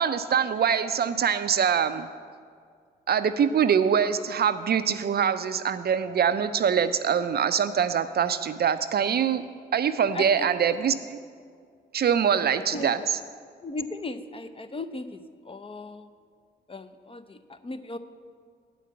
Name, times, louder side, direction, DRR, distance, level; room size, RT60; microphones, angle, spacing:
voice 1, 0.0-2.1 3.1-9.4 9.7-11.2 11.9-13.0, right 7 dB, 50° right, 12 dB, 0.5 m, -24 dB
voice 2, 10.1-10.5 12.7-13.0 13.6-15.2 15.4-16.1 16.7-18.0, left 2 dB, 25° left, 9 dB, 0.7 m, -36 dB
8.4 x 5.1 x 7.7 m, 2.1 s
supercardioid pair, 45°, 21 cm